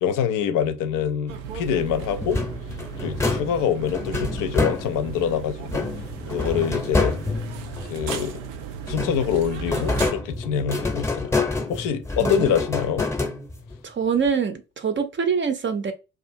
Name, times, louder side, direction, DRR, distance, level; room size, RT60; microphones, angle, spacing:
voice 1, 0.0-2.4 3.0-5.8 6.3-7.2 7.8-8.4 8.9-11.4 11.7-13.1, left 8 dB, 60° left, 0.6 m, -25 dB
sound 1, 1.3-10.1, right 7 dB, 85° right, 0.5 m, -36 dB
sound 2, 2.2-5.2 5.7-8.5 8.9-13.8, left 3 dB, 5° left, 0.7 m, -27 dB
voice 2, 12.2-12.5 13.8-15.9, right 6 dB, 30° right, 0.6 m, -24 dB
2.5 x 2.4 x 2.6 m
hypercardioid pair, 45°, 38 cm